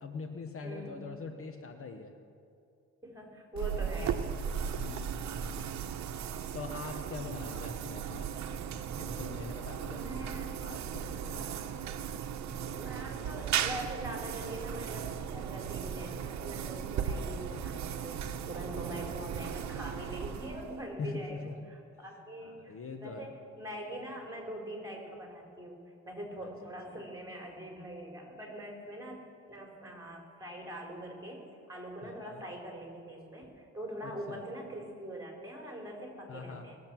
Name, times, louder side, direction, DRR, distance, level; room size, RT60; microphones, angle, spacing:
voice 1, 0.0-2.2 4.8-5.8 6.5-8.3 9.0-10.0 10.6-11.5 21.0-21.6 22.1-23.3 26.4-26.5 26.9-27.0 32.0-32.4 34.0-34.4 36.3-36.7, left 4 dB, 45° left, 6 dB, 1.0 m, -43 dB
voice 2, 0.6-1.0 3.0-4.2 7.5-7.6 9.9-10.6 11.3-11.7 12.7-36.8, right 1 dB, 10° right, 0 dB, 3.6 m, -43 dB
sound 1, 3.6-20.9, right 8 dB, 65° right, 0.9 m, -37 dB
20.0 x 7.5 x 6.0 m, 2.6 s
cardioid pair, 90°, 30 cm